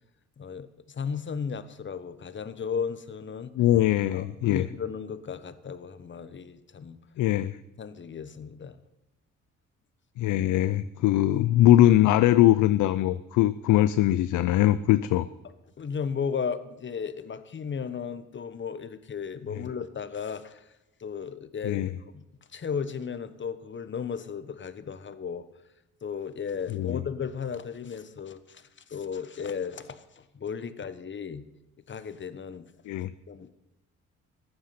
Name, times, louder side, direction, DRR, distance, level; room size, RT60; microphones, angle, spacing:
voice 1, 0.4-3.5 4.1-7.0 7.8-8.8 15.4-20.7 21.0-21.8 22.1-22.2 22.5-25.4 26.0-31.4 31.9-32.7 33.3-33.6, left 6 dB, 40° left, 13 dB, 1.2 m, -35 dB
voice 2, 3.5-4.7 7.2-7.6 10.2-15.3 19.5-19.6 21.6-21.9 26.7-27.0 32.9-33.1, left 13 dB, 80° left, 14 dB, 0.6 m, -21 dB
14.5 x 10.5 x 5.8 m, 1.0 s
cardioid pair, 90°, 30 cm